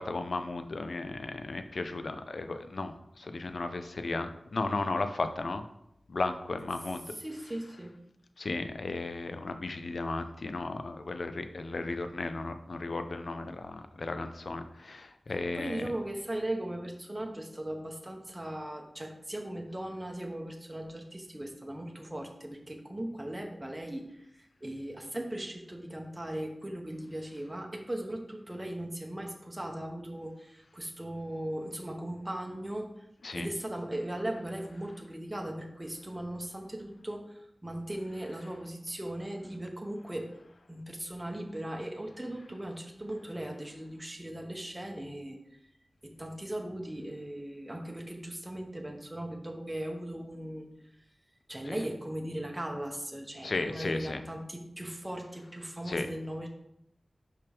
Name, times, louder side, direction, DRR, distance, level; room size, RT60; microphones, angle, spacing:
voice 1, 0.0-2.9 3.2-5.6 6.1-7.0 8.4-15.8 33.2-33.5 51.7-51.8 53.4-54.2 55.9-56.1, left 3 dB, 70° left, 9 dB, 0.5 m, -35 dB
voice 2, 7.1-7.9 15.3-24.3 24.6-32.9 33.3-40.3 40.7-45.4 46.0-50.7 51.5-56.5, right 1 dB, 15° right, 1 dB, 0.9 m, -38 dB
5.8 x 4.8 x 3.4 m, 0.78 s
wide cardioid pair, 65°, 0 cm